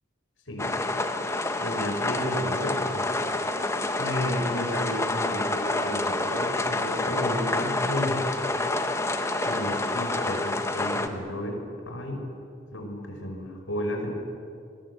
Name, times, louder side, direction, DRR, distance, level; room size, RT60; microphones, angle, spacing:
voice 1, 0.5-0.8 1.6-3.2 4.0-8.2 9.5-12.3 12.7-14.1, left 1 dB, 80° left, 3 dB, 5.8 m, -32 dB
sound 1, 0.6-11.1, left 2 dB, 15° left, 1.3 m, -28 dB
26.5 x 22.5 x 8.2 m, 2.5 s
head